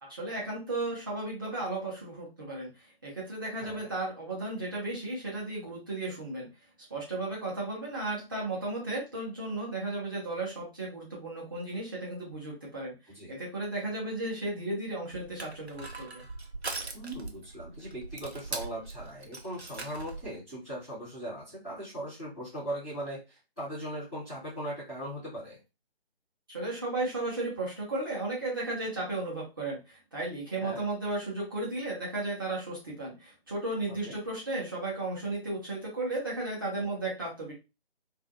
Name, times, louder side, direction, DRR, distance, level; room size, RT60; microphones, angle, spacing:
voice 1, 0.0-2.7 3.0-6.5 6.9-12.9 13.3-16.2 26.5-37.5, right 2 dB, 20° right, -5 dB, 0.9 m, -34 dB
voice 2, 3.6-3.9 13.1-13.4 16.9-25.6 30.6-30.8 33.9-34.1, right 1 dB, 5° left, -14 dB, 0.6 m, -39 dB
Crushing, 15.1-20.3, right 3 dB, 85° right, 0.8 m, -41 dB
2.6 x 2.2 x 3.5 m, 0.27 s
figure-of-eight pair, 150°, 31 cm